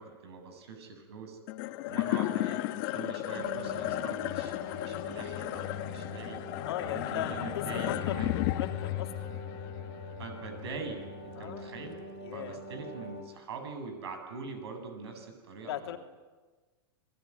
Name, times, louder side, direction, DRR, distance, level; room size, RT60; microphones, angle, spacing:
voice 1, 0.0-1.4 1.9-6.4 6.8-8.4 10.2-16.0, right 4 dB, 80° right, 6 dB, 7.4 m, -43 dB
sound 1, 1.5-12.0, left 15 dB, 50° left, 1.7 m, -34 dB
voice 2, 1.9-2.2 6.1-6.2 6.6-9.3 11.4-11.7 12.2-12.6 15.6-16.0, left 12 dB, 70° left, 5 dB, 3.2 m, -39 dB
sound 2, 3.3-13.2, right 1 dB, 50° right, 4.6 m, -46 dB
27.0 x 21.5 x 9.7 m, 1.3 s
hypercardioid pair, 125°, 14 cm